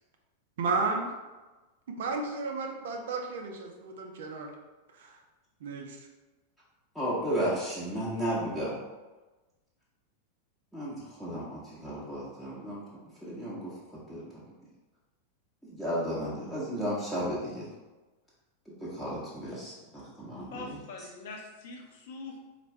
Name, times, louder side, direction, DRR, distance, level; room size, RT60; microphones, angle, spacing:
voice 1, 0.6-1.1 1.9-4.5 4.9-5.2 5.6-6.0, right 4 dB, 60° right, 0.5 m, -33 dB
voice 2, 6.9-8.8 10.7-12.8 13.2-14.4 15.6-17.7 18.7-20.8, equal, ahead, 0.8 m, -34 dB
voice 3, 20.5-22.4, left 3 dB, 50° left, 0.7 m, -43 dB
4.3 x 2.5 x 3.2 m
figure-of-eight pair, 90°, 0 cm